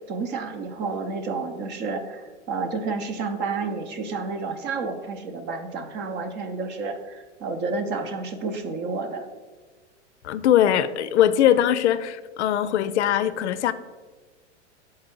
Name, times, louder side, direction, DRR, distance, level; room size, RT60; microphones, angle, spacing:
voice 1, 0.1-9.3, right 4 dB, 30° right, 8 dB, 0.7 m, -30 dB
voice 2, 10.2-13.7, left 11 dB, 70° left, 13 dB, 0.5 m, -21 dB
7.7 x 4.3 x 3.7 m, 1.4 s
hypercardioid pair, 115°, 35 cm